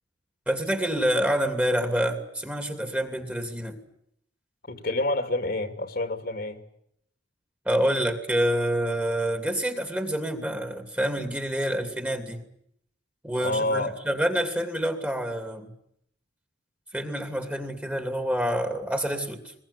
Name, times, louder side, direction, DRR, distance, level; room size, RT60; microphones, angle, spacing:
voice 1, 0.5-3.8 7.6-12.4 13.2-15.7 16.9-19.5, equal, 10° right, 2.7 m, -27 dB
voice 2, 4.7-6.6 13.4-13.9, left 2 dB, 50° left, 2.6 m, -28 dB
22.0 x 22.0 x 9.9 m
head